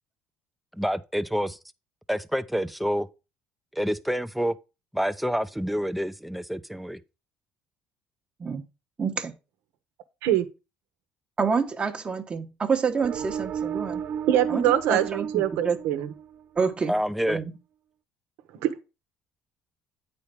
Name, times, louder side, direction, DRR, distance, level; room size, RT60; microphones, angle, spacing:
voice 1, 0.7-1.6 2.1-3.1 3.7-4.5 4.9-7.0 16.9-17.4, equal, ahead, 0.6 m, -27 dB
voice 2, 9.0-9.3 11.4-14.0 14.5-14.6 14.9-15.0 15.3-15.8 16.6-16.9 17.3-17.4, right 5 dB, 30° right, 1.1 m, -27 dB
sound 1, 13.0-16.6, right 8 dB, 50° right, 0.5 m, -33 dB
voice 3, 14.3-16.1 18.6-18.7, right 11 dB, 80° right, 1.1 m, -23 dB
8.5 x 4.4 x 5.0 m
supercardioid pair, 95°, 4 cm